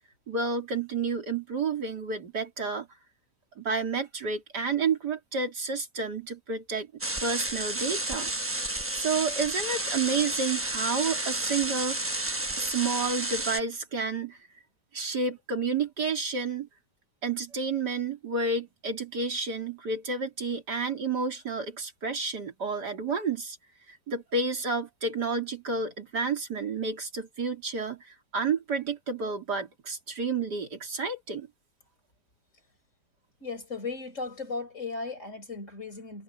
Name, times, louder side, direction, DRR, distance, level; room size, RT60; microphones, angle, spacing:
voice 1, 0.3-2.9 3.6-6.9 7.2-8.3 8.7-12.2 12.6-14.4 14.9-16.7 17.2-23.6 23.9-31.5, right 4 dB, 70° right, 3.6 m, -30 dB
sound 1, 7.0-13.6, right 1 dB, 10° right, 0.7 m, -31 dB
voice 2, 33.4-36.2, left 4 dB, 45° left, 4.7 m, -36 dB
omnidirectional pair, 1.8 m